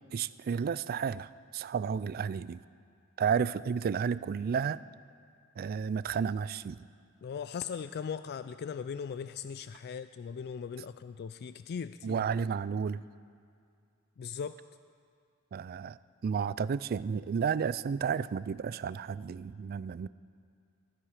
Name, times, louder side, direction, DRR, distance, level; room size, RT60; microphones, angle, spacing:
voice 1, 0.1-2.6 3.2-4.8 5.6-6.9 12.0-13.0 15.5-16.0 16.2-20.1, right 6 dB, 45° right, 17 dB, 0.3 m, -32 dB
voice 2, 7.2-12.2 14.2-14.6, left 6 dB, 45° left, 12 dB, 0.3 m, -39 dB
20.0 x 14.0 x 4.9 m, 2.3 s
head